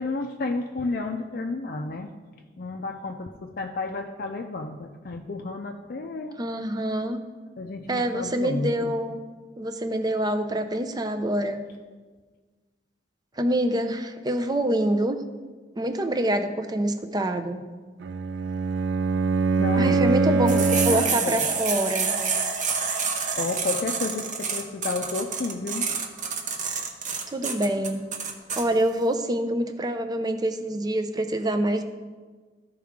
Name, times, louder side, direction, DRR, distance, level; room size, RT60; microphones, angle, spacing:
voice 1, 0.0-2.1 2.6-6.4 7.6-8.9 19.6-21.5 23.4-26.0, left 3 dB, 55° left, 3 dB, 0.5 m, -31 dB
voice 2, 6.4-7.2 7.9-9.2 9.6-11.6 13.4-15.2 15.8-17.6 19.7-20.6 20.8-22.1 27.3-28.1 28.6-31.8, right 1 dB, 25° right, 7 dB, 0.5 m, -26 dB
Bowed string instrument, 18.0-21.2, right 4 dB, 80° right, 0.3 m, -23 dB
sound 1, 20.5-28.6, right 5 dB, 45° right, 0.8 m, -28 dB
13.5 x 4.7 x 3.6 m, 1.4 s
head